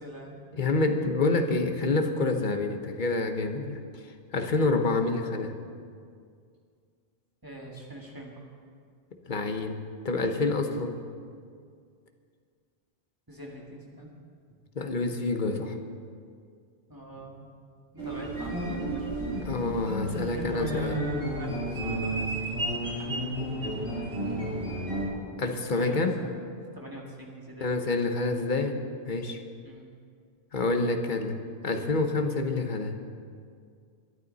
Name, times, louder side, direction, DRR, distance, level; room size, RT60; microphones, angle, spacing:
voice 1, 0.0-0.4 4.5-4.8 7.4-8.5 13.3-14.1 16.9-17.4 18.0-19.2 20.2-22.6 23.6-24.4 25.7-26.3 26.7-27.8 29.6-29.9, right 1 dB, 20° right, -2 dB, 2.1 m, -43 dB
voice 2, 0.6-3.8 4.3-5.6 9.3-9.8 10.0-11.0 14.8-15.8 19.4-21.0 25.4-26.2 27.6-29.4 30.5-33.0, left 3 dB, 50° left, 6 dB, 1.2 m, -27 dB
sound 1, 18.0-25.1, right 1 dB, 80° right, 3.7 m, -32 dB
21.5 x 11.0 x 4.1 m, 2.2 s
omnidirectional pair, 1.0 m